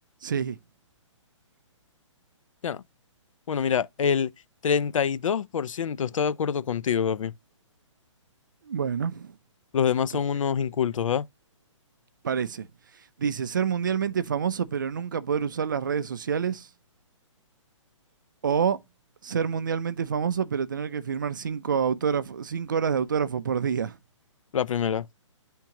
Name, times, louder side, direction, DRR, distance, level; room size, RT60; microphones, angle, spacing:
voice 1, 0.2-0.6 8.7-9.3 12.2-12.7 13.2-16.7 18.4-18.8 19.2-24.0, right 7 dB, 40° right, 0.4 m, -27 dB
voice 2, 3.5-4.3 4.6-7.3 9.7-11.3 24.5-25.1, left 7 dB, 85° left, 0.5 m, -25 dB
10.0 x 3.6 x 2.9 m
hypercardioid pair, 175°, 17 cm